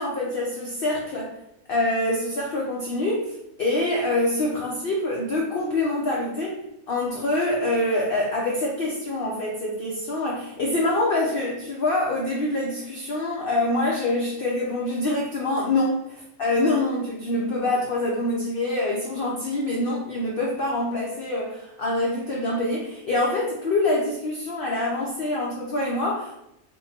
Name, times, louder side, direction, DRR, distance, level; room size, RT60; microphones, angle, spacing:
voice 1, 0.0-1.3 1.7-6.6 6.9-16.0 16.4-26.4, left 2 dB, 55° left, -3 dB, 0.6 m, -25 dB
3.5 x 2.1 x 4.1 m, 0.83 s
omnidirectional pair, 1.5 m